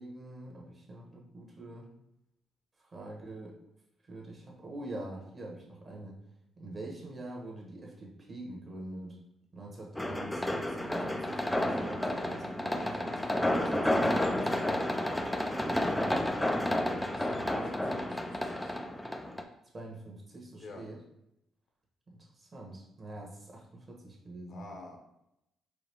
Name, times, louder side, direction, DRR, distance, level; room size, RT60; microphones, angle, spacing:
voice 1, 0.0-1.9 2.8-3.5 4.1-6.2 6.6-9.2 9.5-14.7 19.7-21.0 22.1-24.7, right 2 dB, 35° right, -1 dB, 1.3 m, -45 dB
sound 1, 10.0-19.4, left 1 dB, 10° left, 0.4 m, -31 dB
voice 2, 17.1-18.8 20.6-20.8 24.5-25.0, left 2 dB, 60° left, 2 dB, 0.9 m, -49 dB
4.7 x 2.4 x 3.4 m, 0.82 s
cardioid pair, 90°, 0 cm